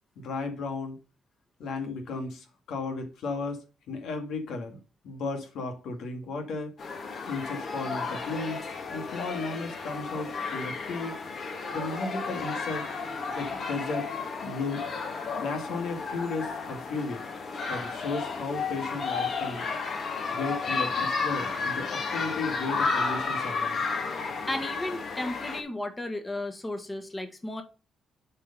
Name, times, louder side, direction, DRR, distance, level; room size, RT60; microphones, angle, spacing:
voice 1, 0.2-1.0 1.6-4.8 5.0-6.7 7.3-8.6 8.9-11.2 11.7-12.9 13.3-14.1 14.4-14.8 15.4-17.2 17.7-19.6 20.3-23.8, left 3 dB, 75° left, 1.9 m, -34 dB
sound 1, 6.8-25.6, left 4 dB, 55° left, 1.8 m, -32 dB
voice 2, 24.5-27.6, left 1 dB, 15° left, 1.4 m, -34 dB
7.6 x 4.7 x 5.4 m
cardioid pair, 90°, 0 cm